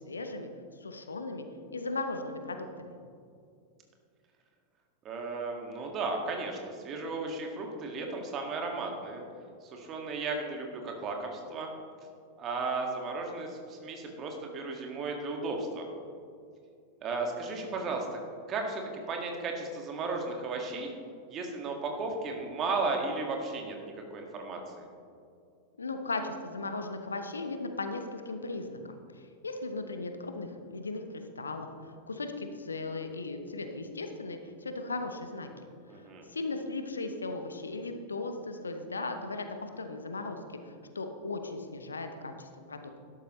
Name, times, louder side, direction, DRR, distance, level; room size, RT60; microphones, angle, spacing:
voice 1, 0.0-0.5 0.8-1.4 1.7-2.9 25.8-29.0 29.4-31.7 32.1-35.5 35.9-36.0 36.3-40.4 40.7-42.9, left 3 dB, 75° left, 7 dB, 0.9 m, -37 dB
voice 2, 5.0-9.2 9.7-11.7 12.4-15.9 17.0-18.2 18.5-20.9 21.3-23.8 24.1-24.9 35.9-36.2, right 3 dB, 30° right, 2 dB, 1.9 m, -35 dB
12.5 x 11.5 x 3.1 m, 2.3 s
figure-of-eight pair, 90°, 0 cm